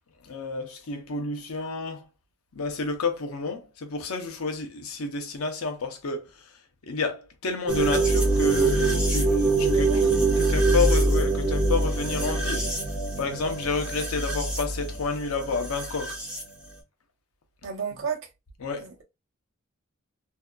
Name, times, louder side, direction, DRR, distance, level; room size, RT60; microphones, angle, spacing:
voice 1, 0.2-2.0 2.6-6.2 6.9-12.7 13.2-16.2 18.6-18.9, left 4 dB, 80° left, 0.6 m, -30 dB
sound 1, 7.7-16.4, right 2 dB, 5° right, 0.9 m, -24 dB
voice 2, 17.6-18.2 18.8-19.0, right 6 dB, 60° right, 0.7 m, -32 dB
2.7 x 2.3 x 2.2 m
head